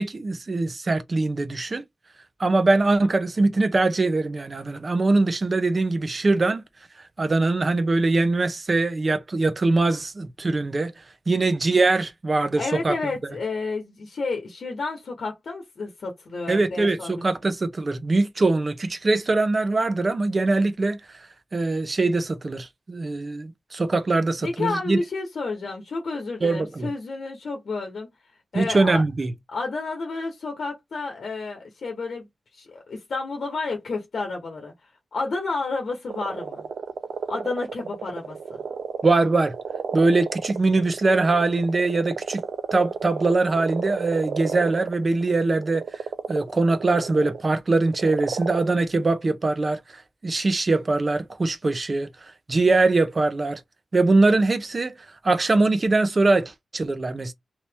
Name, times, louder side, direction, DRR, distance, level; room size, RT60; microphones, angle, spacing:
voice 1, 0.0-1.8 2.4-6.6 7.2-10.9 11.3-12.9 16.5-21.3 21.5-25.0 26.4-26.9 28.5-29.3 39.0-39.5 39.9-42.4 42.7-46.0 46.3-52.1 52.5-53.6 53.9-55.0 55.2-57.3, right 3 dB, 35° right, 0.7 m, -22 dB
voice 2, 12.6-17.2 24.4-28.1 28.5-29.0 29.5-32.3 32.5-34.7 35.1-36.6 37.3-38.6, left 3 dB, 65° left, 1.0 m, -31 dB
sound 1, 36.1-47.4 47.8-48.8, right 6 dB, 80° right, 0.5 m, -33 dB
2.9 x 2.8 x 3.4 m
wide cardioid pair, 110°, 0 cm